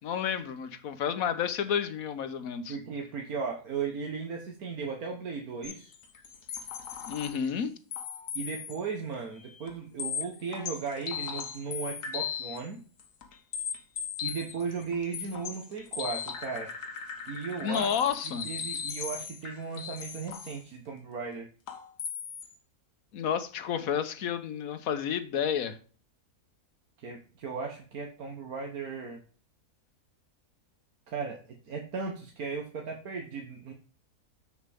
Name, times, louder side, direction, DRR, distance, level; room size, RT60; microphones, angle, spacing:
voice 1, 0.0-2.8 7.1-7.7 17.6-18.5 23.1-25.8, left 8 dB, 65° left, 1.3 m, -30 dB
voice 2, 2.7-5.9 8.4-12.8 14.2-16.7 17.3-17.9 18.5-21.5 27.0-29.2 31.1-33.7, right 5 dB, 70° right, 1.6 m, -36 dB
sound 1, 5.6-7.5 7.9-8.8 9.1-9.2 9.7-9.8 10.0-12.7 13.0-20.6 21.7-22.6, left 7 dB, 80° left, 1.8 m, -38 dB
7.4 x 7.4 x 3.5 m
omnidirectional pair, 1.7 m